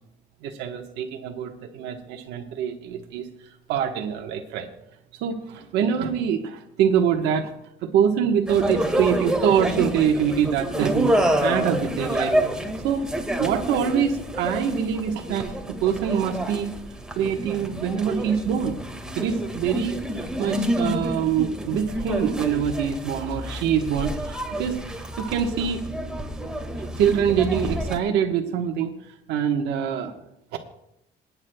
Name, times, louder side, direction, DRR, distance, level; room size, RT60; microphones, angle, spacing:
voice 1, 0.4-3.3 3.7-4.7 5.2-7.5 7.8-12.4 12.8-13.1 13.4-16.7 17.2-18.8 19.1-24.8 25.2-25.8 27.0-29.0 29.3-30.1, right 8 dB, 90° right, 2 dB, 1.2 m, -24 dB
sound 1, 8.5-28.0, right 1 dB, 5° right, 1.7 m, -28 dB
27.5 x 9.5 x 2.2 m, 0.81 s
cardioid pair, 110°, 17 cm